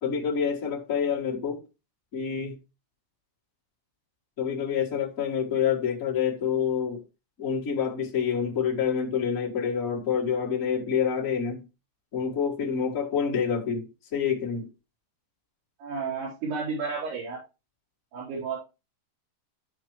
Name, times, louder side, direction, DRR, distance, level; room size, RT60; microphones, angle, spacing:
voice 1, 0.0-1.6 2.1-2.6 4.4-7.0 7.4-11.7 12.1-14.7, left 7 dB, 50° left, 1.0 m, -27 dB
voice 2, 15.8-17.4 18.1-18.6, right 5 dB, 80° right, 6.0 m, -32 dB
14.0 x 5.1 x 3.1 m
omnidirectional pair, 4.7 m